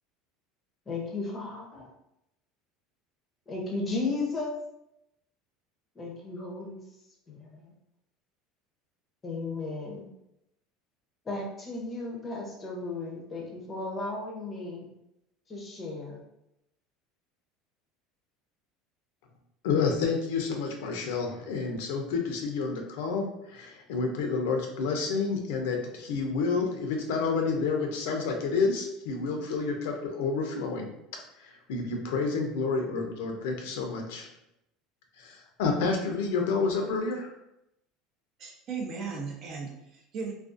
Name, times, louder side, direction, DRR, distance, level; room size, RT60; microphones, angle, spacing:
voice 1, 0.9-1.9 3.5-4.6 5.9-6.8 7.3-7.7 9.2-10.1 11.2-14.9 15.5-16.2, left 3 dB, 20° left, -1 dB, 0.6 m, -35 dB
voice 2, 19.6-30.9 31.4-34.3 35.2-37.3, left 4 dB, 85° left, 3 dB, 0.5 m, -29 dB
voice 3, 38.4-40.3, right 5 dB, 45° right, 1 dB, 0.5 m, -36 dB
2.4 x 2.3 x 2.5 m, 0.83 s
cardioid pair, 150°, 0 cm